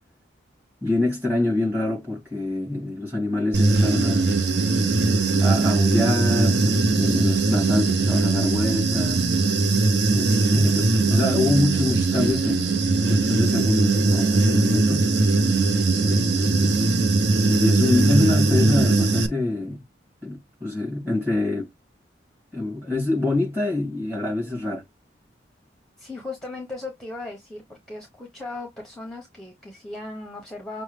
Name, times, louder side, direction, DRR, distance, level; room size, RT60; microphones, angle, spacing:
voice 1, 0.8-4.3 5.4-9.2 10.1-12.7 13.1-15.1 16.0-16.8 17.4-19.8 20.2-21.7 22.5-24.8, left 2 dB, 10° right, 2.1 m, -25 dB
Human voice / Buzz, 3.5-19.3, right 3 dB, 60° right, 0.6 m, -20 dB
voice 2, 26.0-30.8, left 2 dB, 5° left, 0.9 m, -37 dB
6.1 x 2.1 x 3.3 m
head